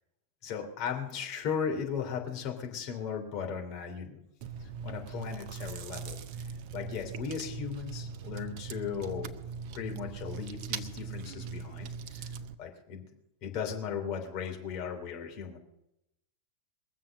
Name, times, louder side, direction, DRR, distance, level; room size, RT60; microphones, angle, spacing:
voice 1, 0.4-4.2 4.6-6.5 6.7-9.4 9.7-13.0 13.4-15.6, left 7 dB, 40° left, 3 dB, 3.0 m, -37 dB
Chewing mastication, 4.4-12.5, right 5 dB, 45° right, 0.9 m, -40 dB
21.5 x 7.4 x 6.6 m, 0.85 s
figure-of-eight pair, 90°, 0 cm